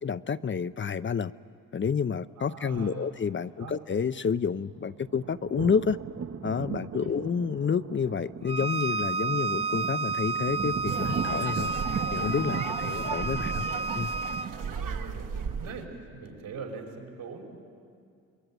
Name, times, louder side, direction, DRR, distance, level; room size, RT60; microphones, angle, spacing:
voice 1, 0.0-1.3 1.7-6.0 6.4-11.7 12.1-13.7 13.9-14.1, left 6 dB, 35° left, 13 dB, 0.7 m, -29 dB
voice 2, 2.4-3.1 3.6-3.7 7.0-7.2 12.5-13.0 14.7-17.4, right 5 dB, 80° right, 0 dB, 5.7 m, -42 dB
sound 1, 4.5-15.0, right 7 dB, 40° right, 1.1 m, -37 dB
Bowed string instrument, 8.5-14.5, right 3 dB, 15° right, 0.7 m, -31 dB
sound 2, 10.9-15.8, right 6 dB, 60° right, 1.7 m, -36 dB
26.5 x 22.5 x 9.2 m, 2.3 s
supercardioid pair, 60°, 35 cm